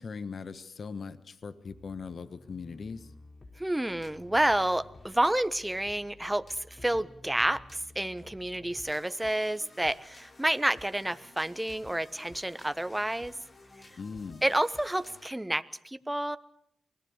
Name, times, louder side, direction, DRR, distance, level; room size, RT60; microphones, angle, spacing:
voice 1, 0.0-3.1 14.0-14.4, left 5 dB, 60° left, 13 dB, 1.4 m, -40 dB
sound 1, 1.7-15.3, left 2 dB, 45° left, 3.2 m, -53 dB
voice 2, 3.6-7.6 7.9-13.3 14.4-16.4, right 1 dB, 15° right, 13 dB, 1.2 m, -29 dB
25.0 x 17.5 x 8.2 m, 0.70 s
supercardioid pair, 45°, 0 cm